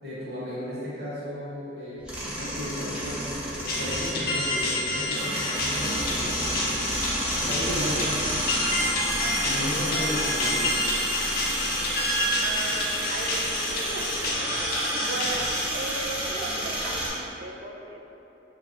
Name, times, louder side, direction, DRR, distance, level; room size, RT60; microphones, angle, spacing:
voice 1, 0.0-7.0 7.4-8.4 9.4-10.7, equal, 55° right, -9 dB, 1.2 m, -34 dB
sound 1, 2.0-17.1, equal, 5° right, 0.6 m, -30 dB
sound 2, 3.7-15.6, left 1 dB, 55° left, 0.5 m, -29 dB
voice 2, 12.4-18.0, right 3 dB, 80° right, 2 dB, 0.4 m, -37 dB
3.3 x 2.3 x 4.1 m, 3.0 s
head